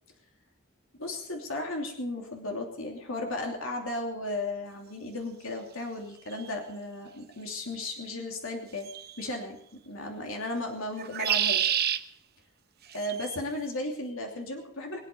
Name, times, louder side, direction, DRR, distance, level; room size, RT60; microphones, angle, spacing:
voice 1, 1.0-8.9 9.2-11.7 12.9-15.0, left 2 dB, 70° left, 2 dB, 2.9 m, -35 dB
sound 1, 6.3-6.4 8.9-9.2 11.0-12.0 12.9-13.4, right 10 dB, 50° right, 0.9 m, -28 dB
23.0 x 8.6 x 6.8 m, 0.65 s
head